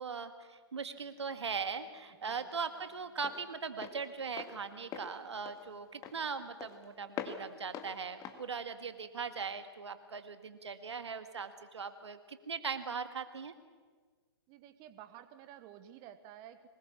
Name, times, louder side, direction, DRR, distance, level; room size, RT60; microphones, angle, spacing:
voice 1, 0.0-13.5, right 5 dB, 85° right, 9 dB, 1.8 m, -40 dB
Walk footsteps, 1.0-9.6, left 7 dB, 25° left, 1.9 m, -47 dB
voice 2, 14.5-16.7, right 11 dB, 35° right, 11 dB, 1.2 m, -52 dB
23.0 x 20.5 x 7.2 m, 1.5 s
hypercardioid pair, 130°, 14 cm